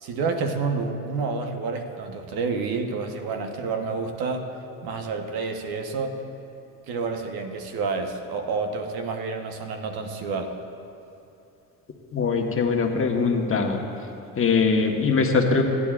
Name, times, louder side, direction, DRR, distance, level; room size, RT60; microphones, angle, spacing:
voice 1, 0.0-4.5 4.8-6.2 6.9-10.5, right 4 dB, 65° right, 5 dB, 1.1 m, -29 dB
voice 2, 12.1-13.8 14.4-15.6, left 4 dB, 35° left, 2 dB, 1.2 m, -22 dB
17.0 x 9.8 x 2.5 m, 2.7 s
supercardioid pair, 85°, 40 cm